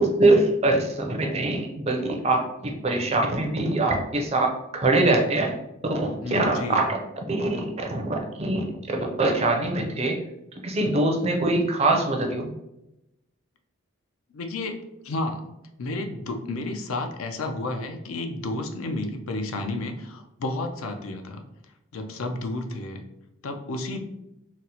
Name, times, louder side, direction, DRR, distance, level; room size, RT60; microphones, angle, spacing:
voice 1, 0.0-4.5 4.7-5.6 6.0-6.9 7.3-8.0 8.4-10.2 10.6-12.5, right 2 dB, 30° right, 3 dB, 0.4 m, -23 dB
voice 2, 6.2-6.9 14.3-14.8 15.0-15.4 15.8-21.4 21.9-23.0 23.4-24.0, left 2 dB, 80° left, 5 dB, 0.5 m, -31 dB
4.0 x 2.0 x 2.8 m, 0.88 s
head